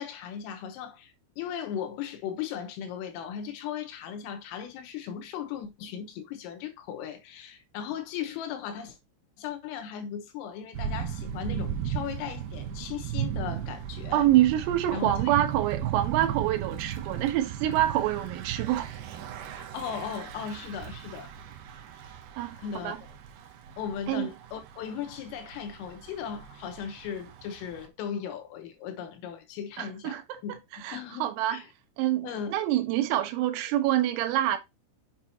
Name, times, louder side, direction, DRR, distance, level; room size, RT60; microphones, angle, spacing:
voice 1, 0.0-9.0 9.4-14.3 14.9-15.3 19.6-21.3 22.6-22.9 23.8-30.6 30.9-31.7 32.2-32.6, left 8 dB, 85° left, 3.7 m, -37 dB
Thunder / Bicycle, 10.7-27.9, right 9 dB, 70° right, 2.5 m, -36 dB
voice 2, 14.1-18.9 22.4-22.6 22.8-23.0 24.1-24.3 29.8-30.4 30.8-31.6 32.0-34.6, right 13 dB, 90° right, 3.8 m, -26 dB
7.4 x 6.7 x 2.8 m
omnidirectional pair, 5.9 m